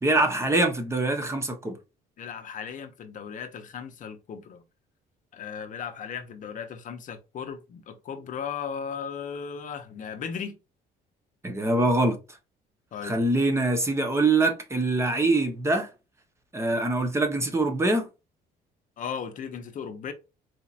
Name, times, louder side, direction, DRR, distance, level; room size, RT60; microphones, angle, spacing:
voice 1, 0.0-1.8 11.4-12.2 13.0-15.9 16.5-18.1, right 2 dB, 15° right, 0.9 m, -24 dB
voice 2, 2.2-4.6 5.3-10.5 12.9-13.2 19.0-20.1, left 7 dB, 50° left, 0.7 m, -36 dB
4.2 x 2.8 x 2.4 m
cardioid pair, 110°, 17 cm